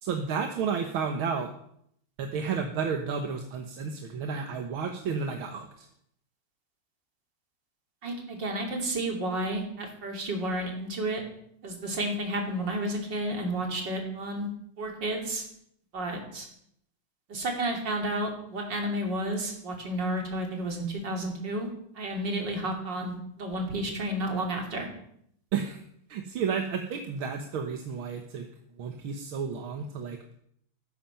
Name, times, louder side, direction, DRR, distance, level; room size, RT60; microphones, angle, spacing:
voice 1, 0.0-1.5 2.2-5.9 25.5-25.8 26.1-28.5 28.8-30.2, right 6 dB, 80° right, 4 dB, 2.0 m, -32 dB
voice 2, 8.0-11.2 11.6-14.5 14.8-15.4 15.9-16.5 17.3-21.7 22.0-24.9, right 1 dB, 55° right, 2 dB, 3.5 m, -31 dB
15.0 x 13.0 x 5.7 m, 0.69 s
omnidirectional pair, 2.3 m